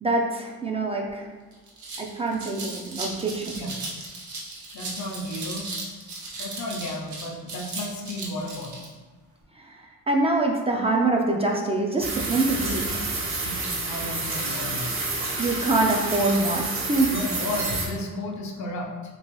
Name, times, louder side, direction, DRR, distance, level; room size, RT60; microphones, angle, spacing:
voice 1, 0.0-1.3 2.0-3.5 9.6-13.1 15.4-17.1, right 2 dB, 20° right, 0 dB, 0.4 m, -25 dB
sound 1, 1.1-1.2 1.5-8.9, right 3 dB, 70° right, 0.9 m, -36 dB
voice 2, 4.7-5.7 6.4-8.9 13.4-14.9 17.1-18.9, left 1 dB, 70° left, 1 dB, 0.7 m, -33 dB
sound 2, 12.0-17.8, right 3 dB, 45° right, 1.0 m, -29 dB
3.0 x 2.9 x 3.0 m, 1.3 s
cardioid pair, 90°, 30 cm